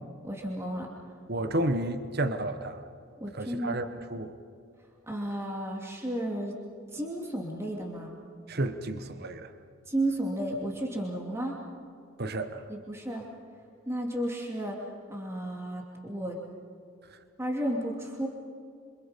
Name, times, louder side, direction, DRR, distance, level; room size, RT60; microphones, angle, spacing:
voice 1, 0.2-0.9 3.2-3.8 5.1-6.5 6.9-8.1 9.9-11.6 12.7-13.2 13.9-16.4 17.4-18.3, right 1 dB, 10° right, -1 dB, 2.9 m, -33 dB
voice 2, 1.3-2.8 3.3-4.4 8.5-9.5 12.2-12.6, right 1 dB, 45° right, 9 dB, 1.1 m, -31 dB
27.5 x 26.0 x 5.3 m, 2.4 s
head